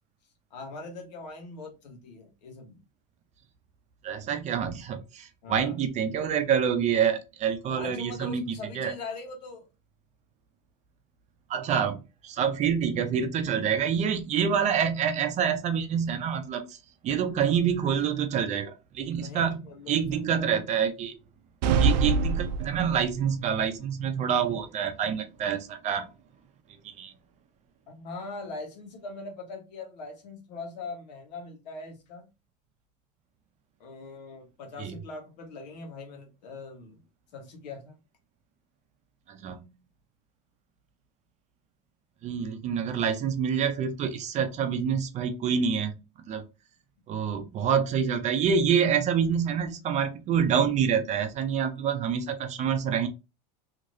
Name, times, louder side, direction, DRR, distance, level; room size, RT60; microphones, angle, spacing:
voice 1, 0.5-2.8 5.4-5.8 7.6-9.6 19.2-20.4 27.9-32.3 33.8-37.0 37.3-37.9, left 3 dB, 90° left, 1.3 m, -41 dB
voice 2, 4.0-8.9 11.5-19.6 19.9-21.2 21.8-26.1 26.8-27.1 34.8-35.0 39.3-39.7 42.2-46.4 47.1-53.1, right 7 dB, 35° right, 0.6 m, -27 dB
sound 1, 21.6-23.3, right 4 dB, 85° right, 0.4 m, -24 dB
3.1 x 2.9 x 2.6 m
supercardioid pair, 130°, 21 cm